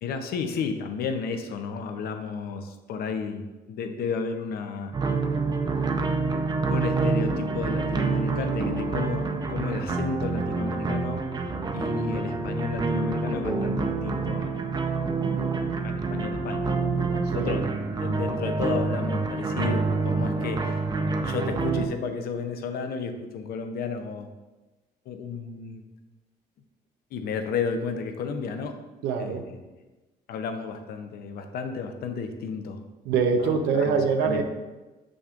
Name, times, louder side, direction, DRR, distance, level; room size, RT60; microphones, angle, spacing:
voice 1, 0.0-5.0 6.7-11.3 11.7-14.7 15.8-16.7 17.3-17.6 18.0-20.8 21.2-24.3 25.1-25.8 27.1-28.8 29.2-29.4 30.3-32.8 33.4-34.0 34.2-34.4, left 5 dB, 65° left, 6 dB, 0.7 m, -32 dB
sound 1, 4.9-21.9, right 4 dB, 25° right, 0.6 m, -27 dB
sound 2, 13.4-17.1, equal, 15° left, 0.6 m, -40 dB
voice 2, 17.2-17.6 29.0-29.5 33.0-34.4, right 5 dB, 85° right, 5 dB, 0.8 m, -24 dB
6.7 x 6.1 x 2.5 m, 1.2 s
cardioid pair, 110°, 17 cm